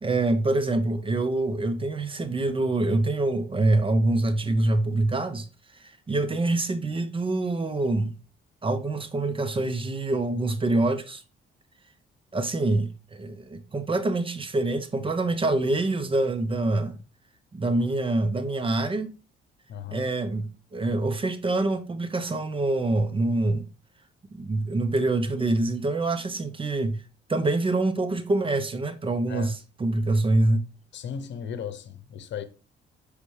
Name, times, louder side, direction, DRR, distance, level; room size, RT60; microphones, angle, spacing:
voice 1, 0.0-5.5 5.8-8.1 8.6-11.2 12.3-17.0 17.5-19.1 19.9-23.7 24.3-27.0 27.3-30.6, right 2 dB, 25° right, 0.9 m, -25 dB
voice 2, 19.7-20.1 29.3-29.5 30.9-32.4, left 7 dB, 65° left, 0.9 m, -36 dB
6.7 x 5.0 x 3.3 m
cardioid pair, 90°, 20 cm